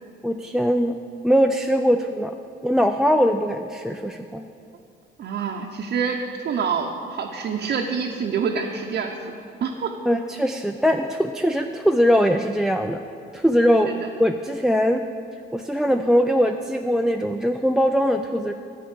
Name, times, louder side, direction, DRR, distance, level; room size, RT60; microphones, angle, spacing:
voice 1, 0.2-0.9 1.2-2.3 2.6-4.4 10.1-13.0 13.3-15.0 15.5-18.5, equal, ahead, 6 dB, 0.3 m, -21 dB
voice 2, 5.2-9.3 9.6-9.9 13.8-14.0, right 6 dB, 55° right, 1 dB, 0.7 m, -26 dB
10.0 x 4.9 x 8.1 m, 2.5 s
cardioid pair, 90°, 20 cm